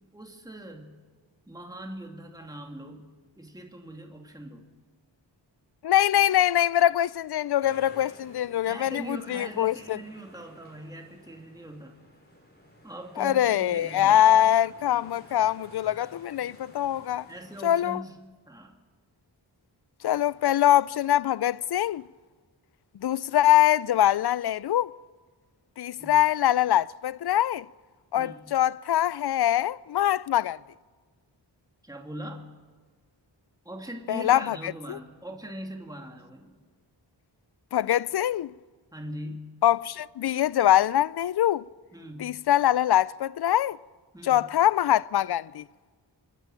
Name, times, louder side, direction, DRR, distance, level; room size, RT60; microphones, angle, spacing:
voice 1, 0.1-1.0 1.5-3.1 3.4-4.6 8.6-11.9 12.8-14.2 17.3-18.2 18.5-18.8 26.0-26.2 28.1-28.5 31.8-32.5 33.6-36.6 38.9-39.5 41.9-42.4 44.1-44.4, right 1 dB, 10° right, 2.5 m, -41 dB
voice 2, 5.8-10.0 13.2-17.3 17.6-18.0 20.0-22.0 23.0-24.9 25.8-27.7 28.1-30.6 34.1-35.0 37.7-38.5 39.6-41.7 42.2-43.8 44.2-45.6, left 12 dB, 60° left, 0.5 m, -23 dB
sound 1, 7.6-18.0, equal, 20° left, 5.7 m, -53 dB
27.5 x 11.0 x 9.0 m
wide cardioid pair, 50°, 45 cm